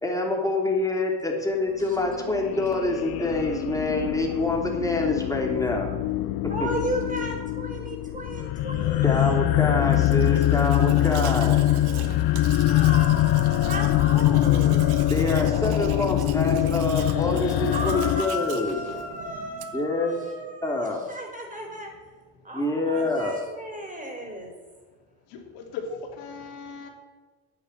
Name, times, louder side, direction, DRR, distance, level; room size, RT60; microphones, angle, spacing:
voice 1, 0.0-6.0 6.6-6.7 9.0-11.6 15.1-18.8 19.7-20.2 20.6-21.1 22.5-23.4, left 2 dB, 10° left, 0 dB, 3.2 m, -26 dB
sound 1, 2.0-18.2, left 14 dB, 60° left, 0.7 m, -23 dB
voice 2, 6.5-9.3 12.7-15.0 17.7-21.9 22.4-24.5, equal, 20° right, 1 dB, 4.7 m, -34 dB
Domestic sounds home sounds, 9.8-19.9, right 9 dB, 65° right, 1.3 m, -41 dB
voice 3, 22.8-23.1 25.3-26.9, left 4 dB, 80° left, 2 dB, 2.7 m, -38 dB
9.5 x 9.5 x 7.6 m, 1.4 s
supercardioid pair, 85°, 41 cm